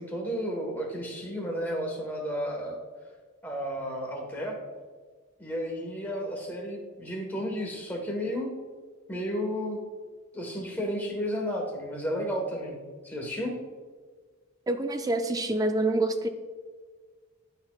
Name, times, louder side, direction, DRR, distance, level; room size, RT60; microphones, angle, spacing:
voice 1, 0.0-2.8 3.4-4.6 5.4-8.5 9.1-9.8 10.3-12.8 13.0-13.5, equal, 10° left, -1 dB, 1.2 m, -32 dB
voice 2, 14.7-16.3, right 2 dB, 15° right, 8 dB, 0.3 m, -26 dB
11.0 x 4.1 x 2.3 m, 1.5 s
head